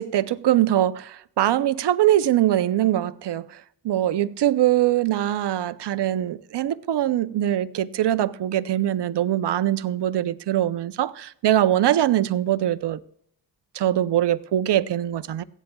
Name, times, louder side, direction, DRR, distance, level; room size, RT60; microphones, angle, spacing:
voice 1, 0.0-13.0 13.7-15.4, right 12 dB, 75° right, 0.6 m, -22 dB
16.5 x 10.5 x 2.3 m
wide cardioid pair, 105°, 41 cm